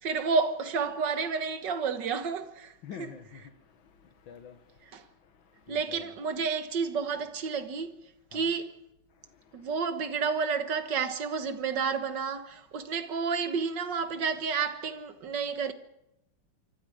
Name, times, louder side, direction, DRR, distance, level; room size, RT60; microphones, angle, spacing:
voice 1, 0.0-2.7 3.0-3.1 4.9-5.0 5.7-7.9 8.3-8.7 9.5-15.7, right 5 dB, 65° right, 2.0 m, -30 dB
voice 2, 2.8-6.1 8.3-8.5 9.1-9.7, left 7 dB, 85° left, 2.0 m, -49 dB
26.0 x 24.0 x 5.0 m
omnidirectional pair, 2.1 m